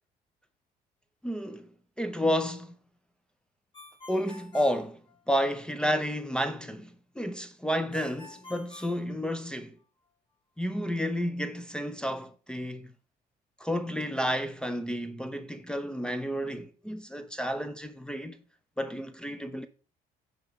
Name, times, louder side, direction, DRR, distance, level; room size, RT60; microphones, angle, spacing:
voice 1, 1.2-1.7 2.0-2.7 4.1-9.8 10.6-12.9 13.6-18.4 18.8-19.7, equal, 5° left, 0.6 m, -31 dB
Ringtone, 3.7-5.7 7.9-9.8, left 4 dB, 25° left, 2.5 m, -49 dB
9.5 x 3.6 x 5.2 m
cardioid pair, 110°, 17 cm